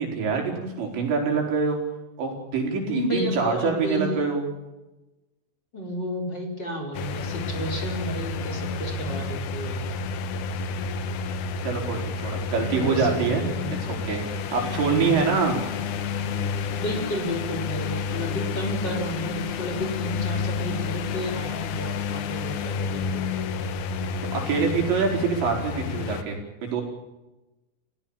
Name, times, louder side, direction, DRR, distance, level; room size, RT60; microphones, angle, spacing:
voice 1, 0.0-1.8 2.2-4.5 11.6-15.6 24.3-26.8, right 5 dB, 70° right, 1 dB, 6.8 m, -25 dB
voice 2, 2.8-4.2 5.7-9.9 12.8-13.8 14.6-15.6 16.8-23.3, equal, 25° left, 2 dB, 3.9 m, -32 dB
sound 1, 6.9-26.2, left 5 dB, 80° left, 1.7 m, -30 dB
29.5 x 17.0 x 7.2 m, 1.0 s
omnidirectional pair, 5.3 m